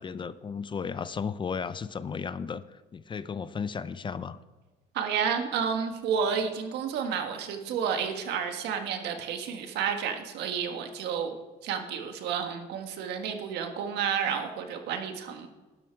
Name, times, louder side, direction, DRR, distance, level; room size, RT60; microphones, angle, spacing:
voice 1, 0.0-4.4, left 6 dB, 30° left, 15 dB, 0.5 m, -34 dB
voice 2, 4.9-11.3 11.6-15.5, right 7 dB, 80° right, 5 dB, 1.6 m, -31 dB
12.5 x 11.0 x 4.6 m, 1.2 s
cardioid pair, 110°, 17 cm